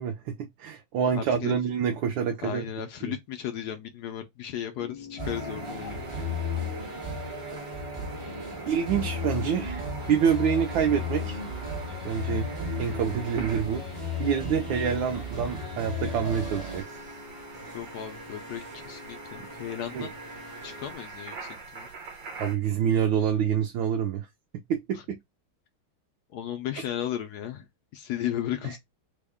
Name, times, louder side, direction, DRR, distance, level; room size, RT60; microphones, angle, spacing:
voice 1, 0.0-2.6 3.0-3.1 8.7-9.8 10.1-11.4 12.0-12.5 12.8-13.8 14.2-16.8 17.7-17.8 19.9-20.1 22.4-24.3 24.7-25.2 28.6-28.7, right 8 dB, 75° right, 1.2 m, -27 dB
voice 2, 1.1-1.5 2.4-6.1 14.8-14.9 17.7-20.1 20.6-21.9 24.9-25.0 26.3-27.6 27.9-28.8, left 10 dB, 80° left, 0.8 m, -35 dB
sound 1, 4.8-20.9, left 1 dB, 15° left, 0.6 m, -46 dB
sound 2, 5.2-16.8, left 3 dB, 40° right, 0.4 m, -34 dB
sound 3, 5.2-22.6, right 3 dB, 60° right, 1.5 m, -44 dB
3.5 x 2.1 x 3.4 m
omnidirectional pair, 2.2 m